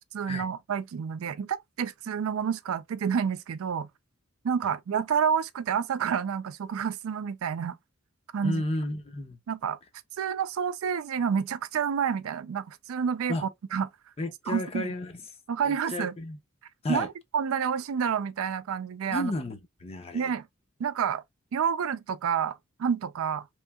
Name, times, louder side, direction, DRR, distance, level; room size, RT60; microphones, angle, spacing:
voice 1, 0.1-3.9 4.4-7.8 8.3-8.6 9.5-9.8 10.2-13.9 14.5-14.9 15.5-16.2 16.9-19.3 20.1-20.5 20.8-21.2 21.5-23.5, right 7 dB, 90° right, 0.4 m, -29 dB
voice 2, 8.4-9.4 13.3-13.4 14.2-15.2 15.6-16.4 16.8-17.1 19.1-20.3, left 1 dB, 30° left, 0.6 m, -32 dB
3.1 x 2.7 x 2.2 m
head